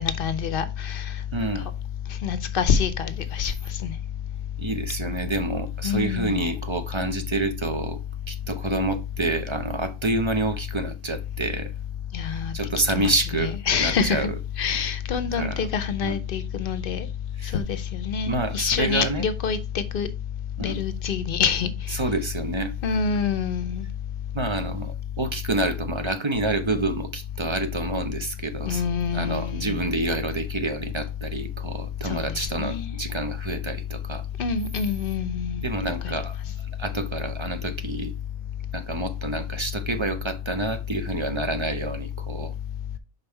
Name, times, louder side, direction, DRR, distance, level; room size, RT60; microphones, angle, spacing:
voice 1, 0.0-1.1 2.2-3.9 5.8-6.5 12.1-12.5 12.9-14.3 14.6-17.1 17.5-20.1 20.6-22.0 22.8-23.9 28.7-30.0 32.0-32.9 34.4-35.6 36.0-36.1, left 6 dB, 65° left, 0.8 m, -26 dB
voice 2, 1.3-1.7 4.6-8.0 8.3-11.7 12.2-14.3 15.4-15.6 16.0-16.2 17.4-17.6 18.2-19.2 20.6-20.8 21.9-22.7 24.3-28.8 29.1-34.2 35.6-36.4 36.8-38.1 38.7-42.5, right 2 dB, 35° right, 0.6 m, -28 dB
5.3 x 4.0 x 4.4 m
omnidirectional pair, 1.1 m